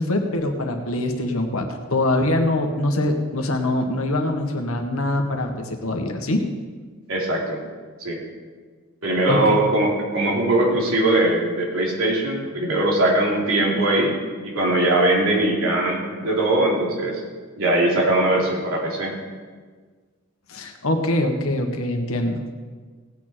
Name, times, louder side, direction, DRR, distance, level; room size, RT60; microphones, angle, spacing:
voice 1, 0.0-6.4 9.3-9.6 20.5-22.5, left 1 dB, 75° left, 4 dB, 1.5 m, -23 dB
voice 2, 7.1-7.6 8.0-8.2 9.0-14.1 14.4-17.2 17.6-19.1, right 1 dB, 70° right, -2 dB, 3.3 m, -21 dB
17.5 x 8.9 x 4.5 m, 1.5 s
head